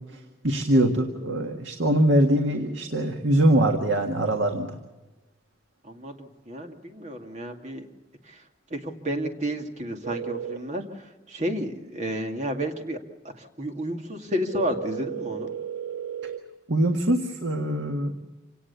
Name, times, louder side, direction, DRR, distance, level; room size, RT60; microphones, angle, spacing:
voice 1, 0.4-4.7 16.7-18.1, right 1 dB, 90° right, 4 dB, 1.8 m, -22 dB
voice 2, 5.8-7.8 8.3-8.4 8.7-13.0 13.4-15.5, equal, 40° right, 4 dB, 2.3 m, -31 dB
sound 1, 10.0-10.6 14.5-16.4, right 8 dB, 70° right, 1.2 m, -34 dB
27.0 x 18.5 x 7.0 m, 1.1 s
head